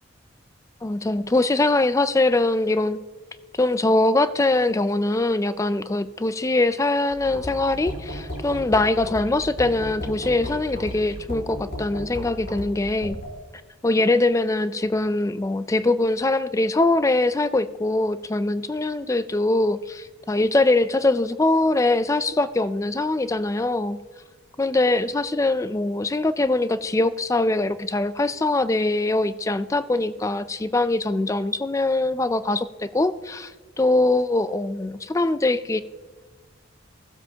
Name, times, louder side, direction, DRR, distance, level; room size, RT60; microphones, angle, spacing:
voice 1, 0.8-3.0 3.6-13.2 13.8-24.0 24.6-33.5 33.8-35.8, left 2 dB, 15° left, 13 dB, 0.3 m, -22 dB
sound 1, 7.1-13.3, equal, 55° left, 3.5 m, -35 dB
16.5 x 7.6 x 2.8 m, 1.3 s
head